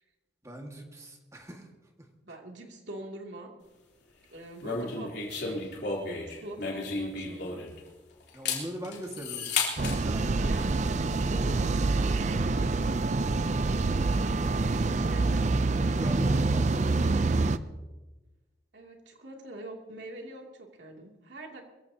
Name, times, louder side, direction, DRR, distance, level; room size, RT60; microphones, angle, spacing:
voice 1, 0.5-1.6 8.3-9.6 9.9-10.2 15.8-17.4, right 1 dB, 15° right, 1 dB, 1.8 m, -41 dB
voice 2, 2.2-3.5 4.3-5.7 6.3-7.6 10.4-13.3 14.4-15.8 18.7-21.6, right 1 dB, 75° right, 0 dB, 2.7 m, -44 dB
sound 1, 4.6-7.9 8.3-10.0, left 4 dB, 65° left, 3.4 m, -33 dB
sound 2, 9.8-17.6, right 3 dB, 40° right, 0.5 m, -26 dB
22.5 x 15.5 x 2.9 m, 1.2 s
head